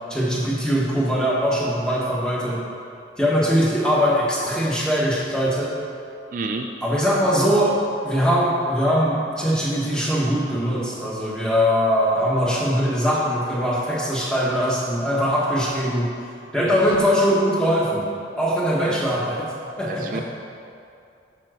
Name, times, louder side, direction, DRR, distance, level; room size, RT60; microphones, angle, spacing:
voice 1, 0.1-2.6 3.2-5.8 6.8-16.1 16.5-18.1 18.4-19.5 19.8-20.2, equal, 5° left, -5 dB, 1.2 m, -21 dB
voice 2, 6.3-6.7 16.6-16.7 18.8-19.0 19.8-20.2, right 3 dB, 45° right, 3 dB, 0.4 m, -29 dB
7.3 x 5.2 x 6.2 m, 2.5 s
head